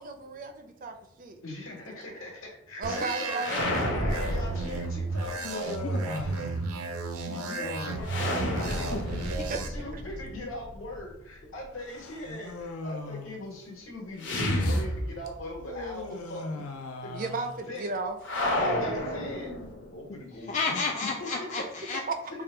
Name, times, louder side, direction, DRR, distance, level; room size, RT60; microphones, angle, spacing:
voice 1, 0.0-1.4 2.8-3.9 9.5-9.6 9.9-10.0 17.1-18.2 22.1-22.2, right 3 dB, 40° right, 7 dB, 0.4 m, -34 dB
voice 2, 1.4-6.3 6.8-6.9 7.2-8.9 9.6-16.6 17.7-17.8 18.5-19.5 19.9-20.8 21.2-21.5, left 1 dB, 70° left, -1 dB, 1.3 m, -41 dB
sound 1, 2.8-9.7, right 3 dB, 85° right, 0.5 m, -33 dB
sound 2, 3.4-5.4 8.0-11.0 14.2-15.6 15.9-16.0 18.2-20.0, left 1 dB, 55° left, 0.8 m, -30 dB
Human voice, 4.5-19.7, left 3 dB, 90° left, 0.5 m, -41 dB
voice 3, 8.9-9.5 20.3-22.0, left 4 dB, 35° left, 0 dB, 0.3 m, -32 dB
3.6 x 2.2 x 4.3 m, 0.73 s
head